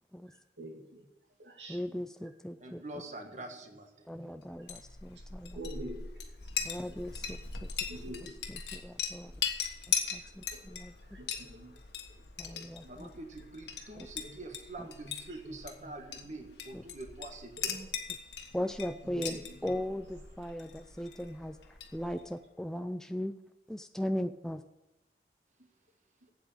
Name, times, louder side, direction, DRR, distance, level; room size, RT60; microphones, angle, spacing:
voice 1, 0.3-1.1 1.4-2.3 3.2-3.4 4.1-4.3 4.6-4.7 5.2-5.3 5.5-6.5 6.8-7.0 7.3-8.5 10.2-10.6 11.0-11.8 12.2-13.0 13.8-13.9 14.2-14.5 15.0-15.5 15.8-15.9 16.3-16.4 17.6-17.9 19.0-19.7 21.0-21.1 25.6-25.7 26.2-26.3, right 1 dB, 80° right, 2 dB, 2.2 m, -48 dB
voice 2, 1.7-2.8 4.1-5.6 6.6-7.7 8.7-9.3 10.1-10.9 12.4-13.1 14.0-14.1 18.5-19.4 19.6-23.4 23.7-24.6, left 1 dB, 5° left, 8 dB, 0.3 m, -38 dB
voice 3, 2.6-4.1 6.6-6.7 12.9-17.7, right 2 dB, 40° right, 5 dB, 1.4 m, -45 dB
Chink clink, 4.5-22.3, left 7 dB, 75° left, 1.4 m, -40 dB
8.4 x 8.0 x 9.0 m, 0.96 s
head